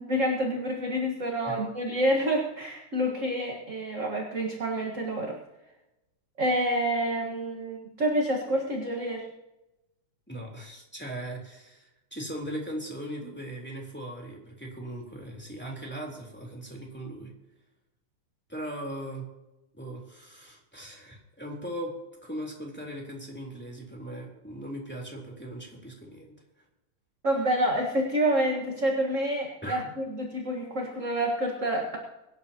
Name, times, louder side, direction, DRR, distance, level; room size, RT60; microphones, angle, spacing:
voice 1, 0.0-5.4 6.4-9.3 27.2-32.0, right 1 dB, 35° right, 0 dB, 1.5 m, -28 dB
voice 2, 10.3-17.3 18.5-19.3 19.7-21.9 22.2-26.3 29.6-29.8, right 1 dB, 5° left, -2 dB, 3.3 m, -39 dB
23.5 x 11.5 x 2.9 m, 0.95 s
omnidirectional pair, 3.4 m